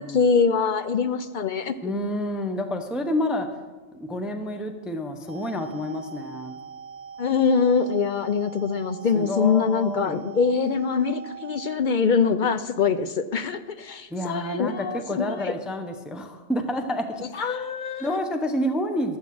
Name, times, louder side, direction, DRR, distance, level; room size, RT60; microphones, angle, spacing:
voice 1, 0.0-1.9 7.2-15.5 17.3-18.1, left 5 dB, 55° left, 10 dB, 0.5 m, -24 dB
voice 2, 1.8-3.5 3.9-6.6 9.1-10.2 14.1-17.7 18.0-19.2, left 1 dB, ahead, 6 dB, 0.7 m, -29 dB
sound 1, 5.3-11.8, right 7 dB, 75° right, 0.3 m, -42 dB
13.0 x 6.1 x 7.6 m, 1.2 s
omnidirectional pair, 1.3 m